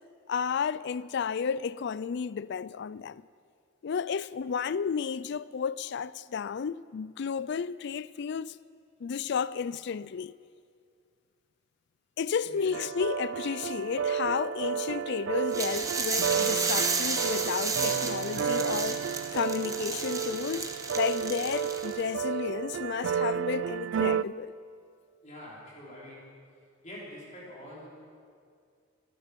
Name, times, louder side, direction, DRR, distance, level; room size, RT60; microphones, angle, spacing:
voice 1, 0.3-3.2 3.8-8.6 9.0-10.3 12.2-24.5, left 6 dB, 55° left, 0.4 m, -32 dB
sound 1, 12.7-24.2, right 7 dB, 65° right, 0.3 m, -32 dB
sound 2, 15.5-22.0, right 4 dB, 15° right, 1.1 m, -32 dB
voice 2, 25.2-26.3 26.8-27.9, left 1 dB, 35° left, 4.3 m, -45 dB
22.5 x 11.5 x 5.3 m
head